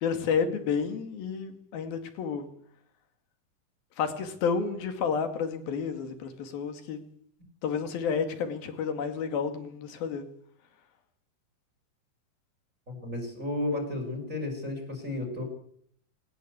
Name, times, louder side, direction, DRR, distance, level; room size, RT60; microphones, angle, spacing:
voice 1, 0.0-2.5 4.0-7.0 7.6-10.2, left 6 dB, 80° left, 8 dB, 4.2 m, -30 dB
voice 2, 12.9-15.4, left 2 dB, 20° right, 3 dB, 5.5 m, -33 dB
20.5 x 18.5 x 8.2 m, 0.65 s
omnidirectional pair, 4.2 m